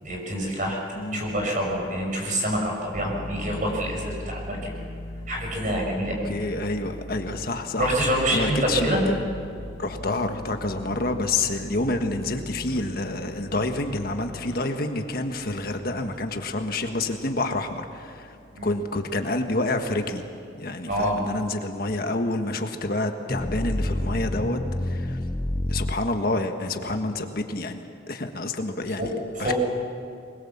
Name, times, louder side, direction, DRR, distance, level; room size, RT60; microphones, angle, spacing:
voice 1, 0.0-0.8 1.1-4.7 5.3-6.3 7.8-9.0 18.5-18.7 20.9-21.2 29.0-29.1 29.3-29.5, right 1 dB, 45° right, 0 dB, 6.5 m, -26 dB
sound 1, 2.9-20.3, left 1 dB, 85° left, 1.4 m, -41 dB
voice 2, 6.2-8.0 8.3-9.2 9.8-18.3 18.6-20.2 20.5-25.2 25.7-27.8 28.1-29.1 29.4-29.5, left 2 dB, 55° left, 5 dB, 1.5 m, -28 dB
sound 2, 23.3-26.0, left 1 dB, 15° left, 0.6 m, -28 dB
24.0 x 21.0 x 7.3 m, 2.5 s
head